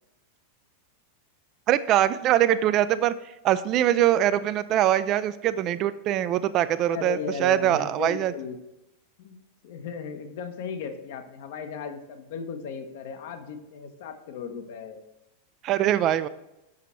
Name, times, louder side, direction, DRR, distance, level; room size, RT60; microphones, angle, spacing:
voice 1, 1.7-3.1 3.4-8.3 15.6-16.3, right 12 dB, 35° right, 14 dB, 0.3 m, -23 dB
voice 2, 6.9-8.6 9.2-15.0, left 6 dB, 50° left, 7 dB, 0.8 m, -36 dB
6.3 x 5.8 x 4.3 m, 0.91 s
figure-of-eight pair, 90°, 0 cm